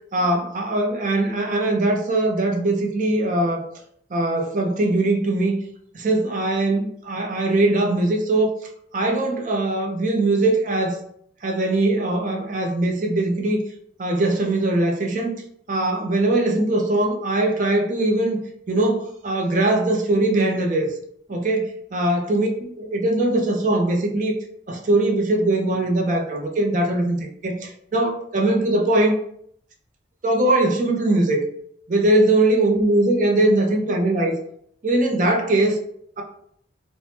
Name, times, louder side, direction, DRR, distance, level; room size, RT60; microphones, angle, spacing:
voice 1, 0.1-3.6 4.1-5.5 5.9-8.5 8.9-10.9 11.4-13.6 14.0-15.4 15.7-18.4 18.7-20.9 21.3-24.4 24.7-29.2 30.2-31.4 31.9-34.4 34.8-35.8 36.2-36.3, right 2 dB, 40° right, 2 dB, 0.5 m, -21 dB
2.7 x 2.1 x 3.3 m, 0.68 s
head